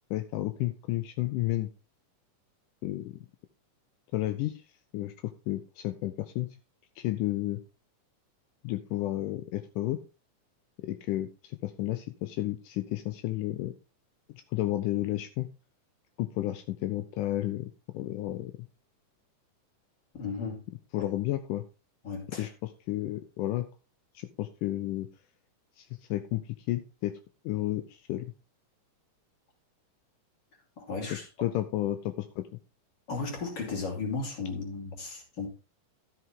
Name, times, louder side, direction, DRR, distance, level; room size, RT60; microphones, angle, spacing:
voice 1, 0.1-1.7 2.8-3.2 4.1-4.6 4.9-5.1 5.5-6.5 7.0-7.6 8.6-10.0 10.8-13.7 14.5-15.5 16.2-18.7 20.9-21.6 22.4-23.7 24.2-25.1 25.8-27.2 27.5-28.3 31.4-32.5, left 15 dB, 80° left, 2.2 m, -32 dB
voice 2, 20.1-20.6 22.0-22.5 30.8-31.3 33.1-35.5, left 4 dB, 35° left, 3.3 m, -35 dB
12.5 x 7.7 x 3.7 m
omnidirectional pair, 3.8 m